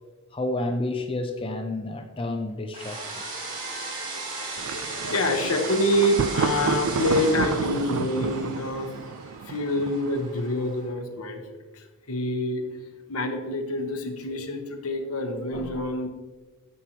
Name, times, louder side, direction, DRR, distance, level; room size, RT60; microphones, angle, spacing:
voice 1, 0.3-3.3, left 2 dB, 25° left, 4 dB, 0.5 m, -30 dB
sound 1, 2.7-10.9, right 3 dB, 35° right, 2.7 m, -36 dB
Thunder, 4.6-10.4, right 6 dB, 75° right, 0.4 m, -30 dB
voice 2, 4.7-8.9 9.5-11.4 11.7-12.7 13.1-16.1, left 1 dB, 75° left, 5 dB, 1.1 m, -26 dB
11.0 x 7.4 x 2.9 m, 1.3 s
head